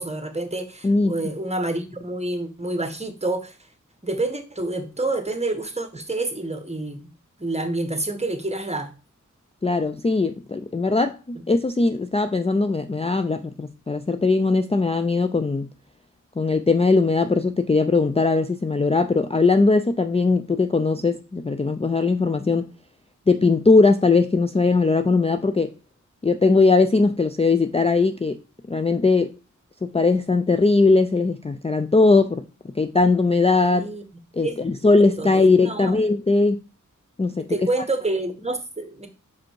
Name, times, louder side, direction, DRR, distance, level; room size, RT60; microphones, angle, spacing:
voice 1, 0.0-3.5 4.0-7.1 7.4-8.9 33.7-34.0 34.4-34.5 35.0-36.0 37.4-39.1, right 2 dB, 20° right, 1.2 m, -28 dB
voice 2, 9.6-15.7 16.4-22.7 23.3-25.7 26.2-28.4 28.7-29.3 29.8-32.4 32.8-33.9 34.3-36.6 37.2-37.5, left 3 dB, 20° left, 0.4 m, -20 dB
5.6 x 5.1 x 4.6 m
wide cardioid pair, 65°, 32 cm